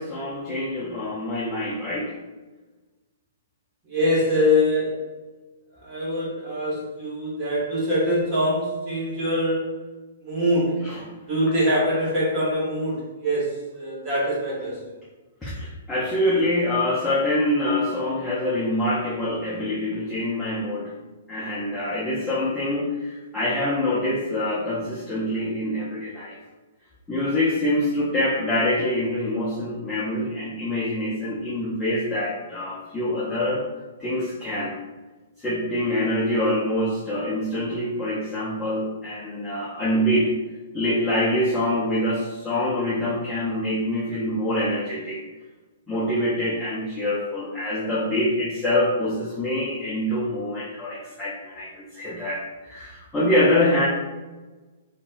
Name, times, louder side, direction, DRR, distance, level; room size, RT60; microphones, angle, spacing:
voice 1, 0.0-2.1 10.8-11.0 15.4-20.9 21.3-26.4 27.1-33.6 34.0-34.7 35.4-40.3 40.7-45.2 45.9-53.9, left 1 dB, 10° left, -8 dB, 0.5 m, -25 dB
voice 2, 3.9-5.1 5.8-9.8 10.2-10.8 11.3-14.9, left 1 dB, 25° right, -7 dB, 1.1 m, -24 dB
3.9 x 2.0 x 2.2 m, 1.2 s
hypercardioid pair, 155°, 0 cm